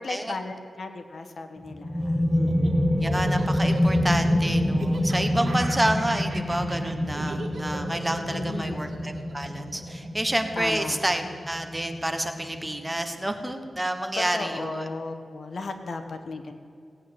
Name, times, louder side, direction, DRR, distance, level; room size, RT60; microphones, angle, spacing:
voice 1, 0.0-2.9 8.3-9.0 10.6-11.0 14.1-16.5, left 3 dB, 60° left, 7 dB, 1.5 m, -35 dB
sound 1, 1.6-12.9, left 1 dB, 5° left, 2.6 m, -27 dB
Laughter, 2.3-10.7, right 3 dB, 65° right, 2.2 m, -40 dB
voice 2, 3.0-14.9, right 1 dB, 10° right, 6 dB, 1.2 m, -29 dB
18.0 x 9.0 x 8.3 m, 2.5 s
wide cardioid pair, 125°, 0 cm